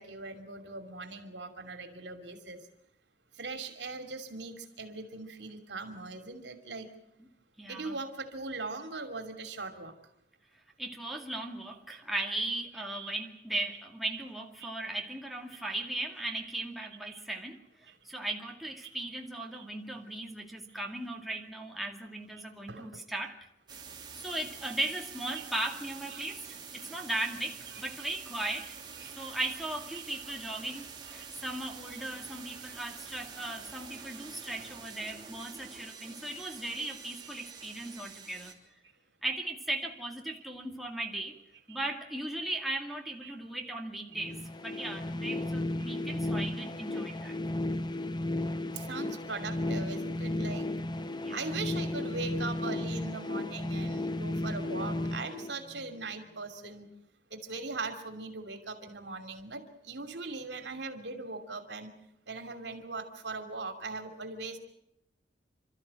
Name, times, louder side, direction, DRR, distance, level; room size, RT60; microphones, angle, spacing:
voice 1, 0.0-2.6 3.4-6.9 7.7-9.9 12.7-13.2 13.7-13.8 14.1-14.3 14.6-14.7 16.3-16.4 17.1-17.2 18.8-18.9 19.5-19.7 20.7-20.8 21.9-22.0 22.7-23.1 24.9-25.0 25.3-25.5 26.1-26.3 26.8-26.9 27.7-27.8 28.6-28.7 29.0-29.1 29.9-30.3 31.0-31.3 34.0-34.1 35.5-35.7 36.8-36.9 37.2-37.5 39.8-39.9 40.3-40.4 41.7-41.8 43.2-43.3 44.7-44.8 45.8-45.9 46.9-47.0 48.7-50.7 51.3-56.9 57.3-61.9 62.3-64.6, right 3 dB, 75° right, 7 dB, 2.8 m, -40 dB
voice 2, 7.6-8.0 10.8-23.4 24.1-28.8 29.2-38.6 39.2-41.4 41.7-47.3 51.1-51.4, right 2 dB, ahead, 0 dB, 2.2 m, -37 dB
sound 1, 23.7-38.5, right 6 dB, 25° right, 3.3 m, -47 dB
sound 2, 44.2-56.1, left 1 dB, 25° left, 0.9 m, -34 dB
28.5 x 13.5 x 8.9 m, 0.81 s
head